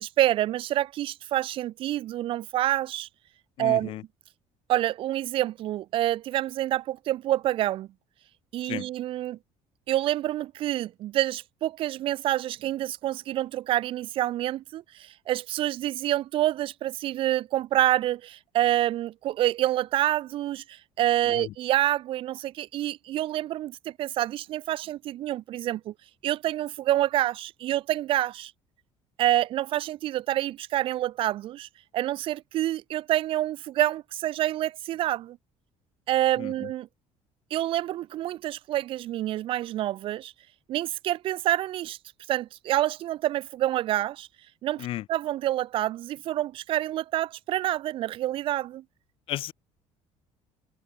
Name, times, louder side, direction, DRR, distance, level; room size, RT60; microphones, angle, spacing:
voice 1, 0.0-3.1 3.6-4.0 4.7-7.9 8.5-9.4 9.9-25.9 26.2-28.5 29.2-31.7 31.9-35.4 36.1-36.9 37.5-40.3 40.7-42.0 42.3-44.3 44.6-48.8, right 14 dB, 50° right, 0.7 m, -27 dB
voice 2, 3.6-4.0 8.6-8.8 21.3-21.5 36.4-36.7 44.8-45.0 49.3-49.5, left 15 dB, 50° left, 0.5 m, -34 dB
cardioid pair, 170°, 12 cm